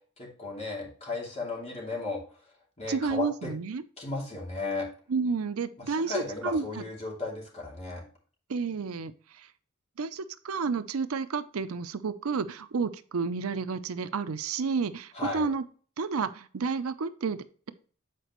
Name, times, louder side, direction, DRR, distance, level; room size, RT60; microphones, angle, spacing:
voice 1, 0.2-2.2 2.8-3.5 4.0-4.9 5.9-8.0 15.1-15.5, left 3 dB, 30° left, -3 dB, 2.7 m, -35 dB
voice 2, 2.9-3.8 5.1-6.8 8.5-9.5 10.0-15.6 16.0-17.7, right 5 dB, 80° right, 13 dB, 0.5 m, -31 dB
8.3 x 5.0 x 3.0 m, 0.42 s
head